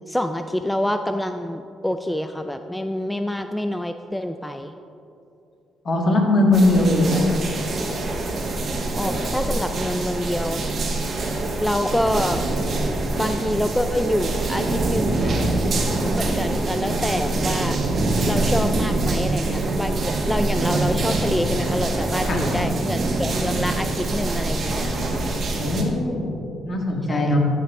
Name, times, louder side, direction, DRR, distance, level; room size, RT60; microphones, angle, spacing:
voice 1, 0.1-4.7 8.9-10.6 11.6-12.4 13.2-15.7 16.1-17.8 18.2-25.0 27.1-27.3, left 1 dB, 5° left, 7 dB, 0.3 m, -26 dB
voice 2, 5.9-7.4 22.2-22.4 25.6-27.4, left 1 dB, 50° left, 1 dB, 1.7 m, -20 dB
sound 1, 6.5-25.8, right 2 dB, 50° right, 1.5 m, -24 dB
13.5 x 5.8 x 3.7 m, 2.7 s
cardioid pair, 90°, 0 cm